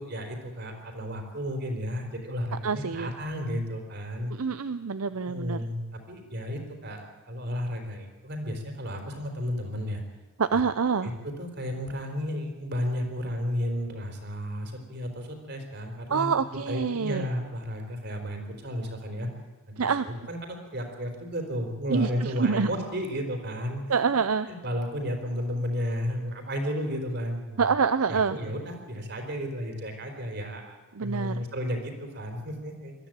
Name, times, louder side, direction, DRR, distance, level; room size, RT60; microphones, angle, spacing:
voice 1, 0.0-4.3 5.3-10.0 10.5-10.6 11.0-11.1 11.4-16.4 16.7-19.3 19.7-19.8 20.0-24.0 24.5-27.6 28.1-30.8 31.0-32.9, equal, 50° right, 4 dB, 3.9 m, -33 dB
voice 2, 2.6-3.1 4.3-5.6 10.4-11.1 16.1-17.3 19.8-20.1 21.9-22.7 23.9-24.5 27.6-28.4 30.9-31.4, right 5 dB, 70° right, 12 dB, 0.6 m, -26 dB
21.5 x 13.5 x 8.9 m, 1.3 s
head